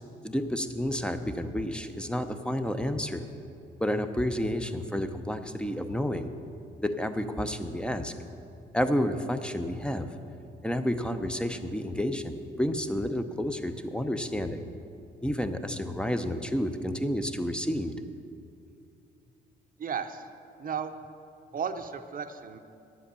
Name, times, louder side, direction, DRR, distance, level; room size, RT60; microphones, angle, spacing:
voice 1, 0.2-3.3 3.8-6.3 6.8-8.1 8.7-10.1 10.6-14.7 15.2-18.1, equal, 5° left, 8 dB, 0.7 m, -30 dB
voice 2, 19.8-20.3 20.6-20.9 21.5-22.6, right 7 dB, 45° right, 8 dB, 0.8 m, -34 dB
10.5 x 7.8 x 6.9 m, 2.6 s
cardioid pair, 90°, 20 cm